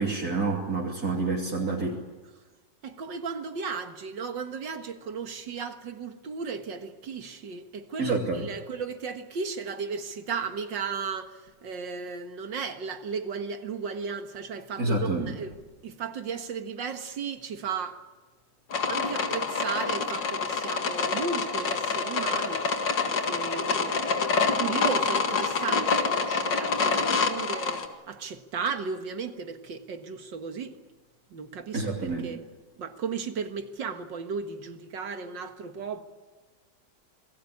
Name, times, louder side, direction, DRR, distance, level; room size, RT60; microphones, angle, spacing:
voice 1, 0.0-2.0 8.0-8.4 14.8-15.4 31.7-32.3, right 3 dB, 55° right, 3.4 m, -28 dB
voice 2, 2.8-15.5 15.8-18.0 18.9-22.6 23.0-24.0 24.4-30.8 31.3-32.4 32.8-36.0, right 5 dB, 90° right, 2.3 m, -35 dB
sound 1, 18.7-27.9, left 4 dB, 80° left, 2.6 m, -27 dB
27.0 x 21.0 x 8.6 m
omnidirectional pair, 1.9 m